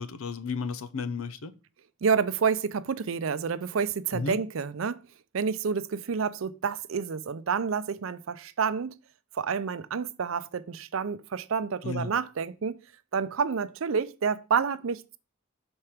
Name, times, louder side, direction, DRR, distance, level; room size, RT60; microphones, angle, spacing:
voice 1, 0.0-1.5 4.1-4.4 11.8-12.1, left 4 dB, 90° left, 0.6 m, -33 dB
voice 2, 2.0-5.0 5.3-8.9 9.3-12.8 13.1-15.2, right 6 dB, 75° right, 0.5 m, -29 dB
5.9 x 4.4 x 4.9 m
head